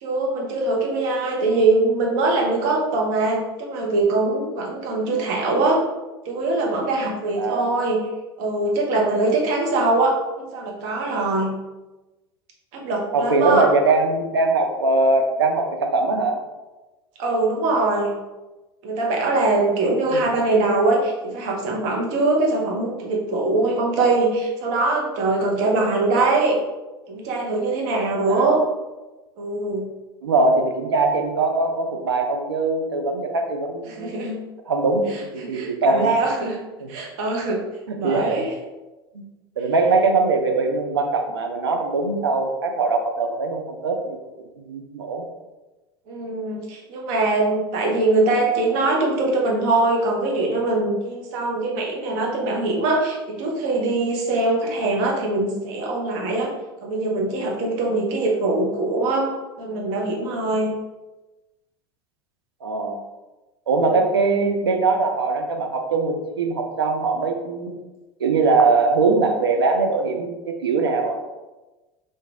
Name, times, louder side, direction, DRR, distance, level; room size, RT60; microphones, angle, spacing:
voice 1, 0.0-5.8 6.2-8.0 8.4-11.6 12.7-13.7 17.2-18.1 18.8-26.6 27.1-28.6 29.4-29.9 33.9-34.4 35.5-36.6 36.9-37.6 38.0-38.5 46.1-56.5 56.8-59.3 59.6-60.7, right 2 dB, 50° right, -1 dB, 1.0 m, -22 dB
voice 2, 7.4-7.7 13.1-16.4 20.1-20.2 28.3-28.5 30.2-34.1 34.7-36.2 36.8-36.9 37.9-38.5 39.1-39.2 39.6-44.2 44.6-45.2 62.6-63.0 63.7-67.8 68.2-71.3, right 3 dB, 75° right, 4 dB, 0.6 m, -21 dB
3.8 x 2.6 x 3.4 m, 1.1 s
figure-of-eight pair, 75°, 13 cm